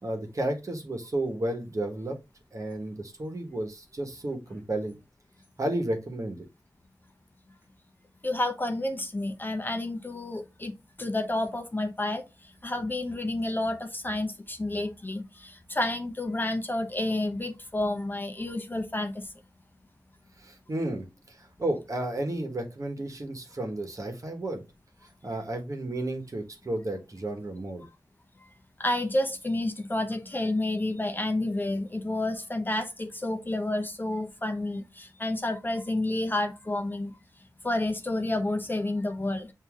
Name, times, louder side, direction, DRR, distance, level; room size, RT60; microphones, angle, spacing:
voice 1, 0.0-2.2 2.5-5.0 5.6-6.5 20.4-24.6 25.2-27.8, right 1 dB, 50° right, 1.2 m, -32 dB
voice 2, 8.2-12.2 12.6-19.3 28.8-37.1 37.6-39.5, left 1 dB, 25° left, 0.7 m, -30 dB
6.8 x 2.7 x 2.4 m
cardioid pair, 45°, 7 cm